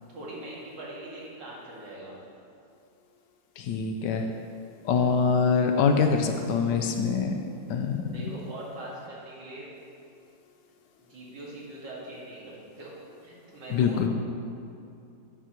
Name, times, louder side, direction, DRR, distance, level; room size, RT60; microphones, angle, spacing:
voice 1, 0.1-2.2 8.1-9.7 11.0-12.9 13.2-14.1, right 1 dB, 65° right, -6 dB, 2.6 m, -42 dB
voice 2, 3.6-4.3 4.8-7.4 7.7-8.0 13.7-14.1, left 5 dB, 70° left, 5 dB, 1.1 m, -24 dB
11.0 x 8.2 x 3.0 m, 2.6 s
omnidirectional pair, 2.1 m